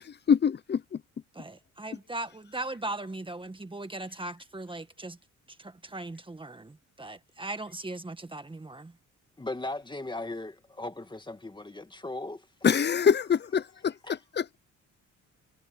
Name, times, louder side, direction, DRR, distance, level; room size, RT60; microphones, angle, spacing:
voice 1, 0.3-0.8 12.6-13.9 14.4-14.6, left 7 dB, 35° left, 0.8 m, -24 dB
voice 2, 1.3-5.2 5.5-8.9, right 2 dB, 15° right, 1.7 m, -39 dB
voice 3, 9.4-12.5 14.0-14.2, left 2 dB, 15° left, 2.2 m, -37 dB
cardioid pair, 90°, 30 cm